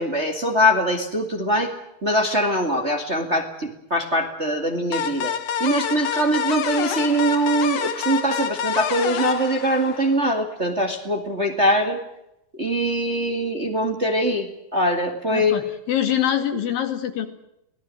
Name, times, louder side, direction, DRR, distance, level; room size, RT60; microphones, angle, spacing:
voice 1, 0.0-1.7 2.0-5.3 5.6-12.0 12.6-15.7, equal, 25° right, 3 dB, 2.0 m, -22 dB
sound 1, 4.9-10.3, left 8 dB, 55° left, 2.2 m, -27 dB
voice 2, 15.3-17.3, left 10 dB, 80° left, 7 dB, 4.0 m, -24 dB
24.5 x 18.5 x 7.7 m, 0.83 s
omnidirectional pair, 4.0 m